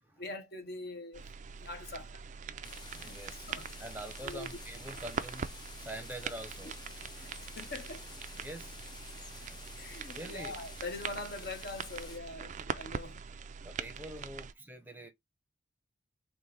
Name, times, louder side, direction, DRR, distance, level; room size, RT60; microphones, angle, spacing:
voice 1, 0.2-1.3 1.6-2.2 2.9-3.2 3.5-3.7 4.2-4.5 6.6-6.7 7.2-8.1 9.4-13.2, left 2 dB, 55° left, 1.0 m, -43 dB
sound 1, 1.1-14.5, right 6 dB, 40° right, 0.4 m, -43 dB
voice 2, 2.5-3.5 3.8-6.8 7.3-7.4 8.3-10.6 13.6-15.1, right 1 dB, 10° right, 0.7 m, -46 dB
sound 2, 2.6-12.2, left 5 dB, 20° left, 0.4 m, -51 dB
4.2 x 3.0 x 3.3 m
head